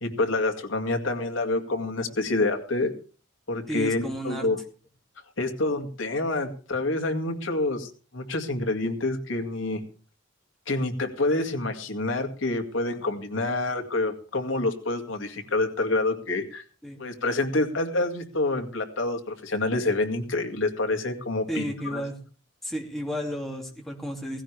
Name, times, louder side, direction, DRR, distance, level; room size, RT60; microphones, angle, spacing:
voice 1, 0.0-2.9 3.5-4.6 5.4-9.8 10.7-16.6 17.0-22.0, left 2 dB, 75° left, 5 dB, 2.3 m, -27 dB
voice 2, 3.7-4.5 16.8-17.0 21.5-22.2 22.6-24.4, equal, ahead, 0 dB, 2.5 m, -32 dB
17.0 x 16.5 x 3.4 m, 0.38 s
head